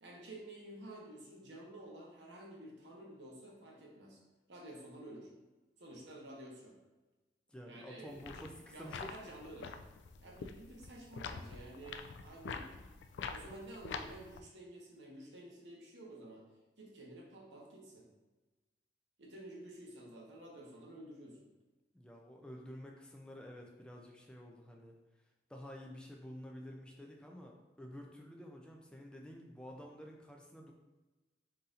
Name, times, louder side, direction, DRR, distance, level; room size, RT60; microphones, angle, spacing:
voice 1, 0.0-4.2 4.5-5.3 5.8-6.8 7.7-9.7 10.2-12.7 13.3-16.5 16.8-18.1 19.2-21.5, right 1 dB, 85° right, -2 dB, 1.0 m, -51 dB
voice 2, 7.5-9.1 21.9-24.9 25.5-30.7, equal, 5° left, 0 dB, 0.5 m, -50 dB
sound 1, 8.1-14.4, left 5 dB, 85° left, 0.3 m, -46 dB
4.2 x 2.6 x 3.7 m, 1.2 s
head